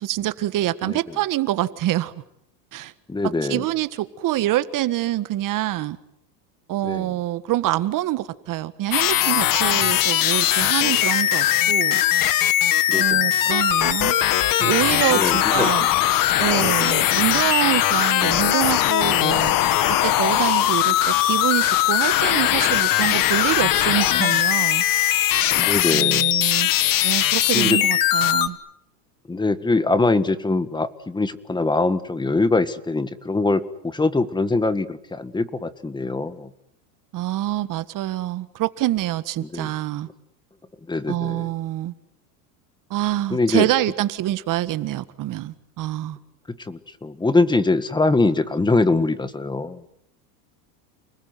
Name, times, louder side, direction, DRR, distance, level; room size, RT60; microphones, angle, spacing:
voice 1, 0.0-2.1 2.7-2.9 3.4-6.0 6.7-12.0 13.0-14.2 14.6-15.9 16.4-19.5 19.9-24.8 25.9-26.7 27.0-28.6 37.1-40.1 41.1-41.9 42.9-46.2, right 14 dB, 40° right, 14 dB, 1.7 m, -25 dB
voice 2, 3.1-3.6 6.8-7.1 12.9-13.3 15.1-15.7 16.8-16.9 25.6-26.3 27.5-27.8 29.3-36.5 39.5-39.7 40.9-41.5 43.3-43.7 46.5-49.8, left 3 dB, 10° left, 14 dB, 1.7 m, -23 dB
sound 1, 8.9-28.5, left 13 dB, 45° left, 1.8 m, -20 dB
30.0 x 20.0 x 9.5 m, 0.77 s
supercardioid pair, 120°, 47 cm